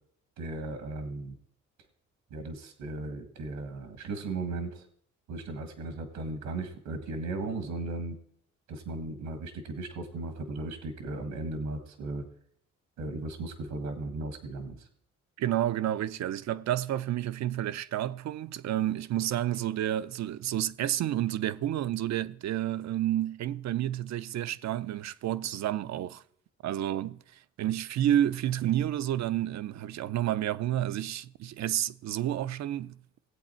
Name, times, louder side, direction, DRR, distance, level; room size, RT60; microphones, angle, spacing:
voice 1, 0.4-1.4 2.3-4.9 5.3-8.2 8.7-12.2 13.0-14.9, right 3 dB, 85° right, 1.8 m, -36 dB
voice 2, 15.4-26.2 26.6-33.0, right 12 dB, 65° right, 0.6 m, -30 dB
18.5 x 8.0 x 4.4 m
cardioid pair, 90°, 30 cm